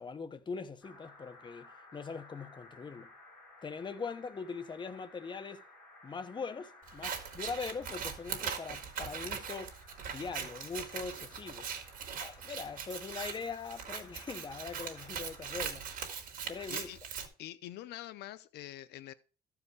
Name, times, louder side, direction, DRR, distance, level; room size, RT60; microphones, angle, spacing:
voice 1, 0.0-3.1 3.6-5.6 6.0-9.7 10.1-11.7 12.2-15.9 16.5-16.9, left 5 dB, 25° left, 1.0 m, -41 dB
sound 1, 0.8-15.6, left 2 dB, 5° left, 6.7 m, -57 dB
Scissors, 6.9-17.3, right 7 dB, 55° right, 2.2 m, -41 dB
voice 2, 16.7-17.0 17.4-19.1, left 14 dB, 75° left, 0.6 m, -45 dB
14.0 x 4.8 x 4.9 m
cardioid pair, 110°, 17 cm